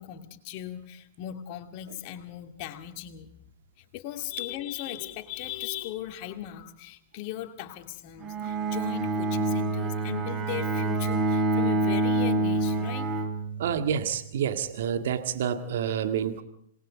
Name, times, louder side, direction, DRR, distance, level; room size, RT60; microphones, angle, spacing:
voice 1, 0.0-3.3 3.8-13.1, left 12 dB, 45° left, 7 dB, 2.4 m, -38 dB
Bowed string instrument, 8.2-14.0, right 2 dB, 30° right, 3.4 m, -27 dB
voice 2, 13.6-16.4, right 8 dB, 60° right, 9 dB, 1.9 m, -28 dB
27.0 x 20.0 x 5.1 m, 0.68 s
figure-of-eight pair, 100°, 0 cm